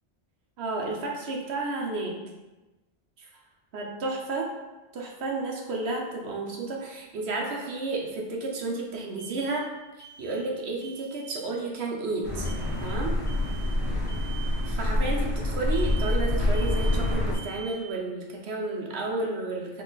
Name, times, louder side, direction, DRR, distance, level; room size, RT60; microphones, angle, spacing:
voice 1, 0.6-2.2 3.2-3.3 3.7-4.5 4.9-9.6 10.2-12.5 12.8-13.2 14.7-19.8, right 3 dB, 70° right, -1 dB, 1.1 m, -32 dB
sound 1, 9.2-10.6 10.8-11.3 12.4-12.9 13.3-13.8 14.1-14.6 15.7-16.3 16.5-17.1 17.3-17.9, right 7 dB, 35° left, 1.2 m, -45 dB
sound 2, 12.2-17.3, left 1 dB, 40° right, 1.7 m, -26 dB
4.3 x 3.2 x 3.9 m, 1.1 s
omnidirectional pair, 1.1 m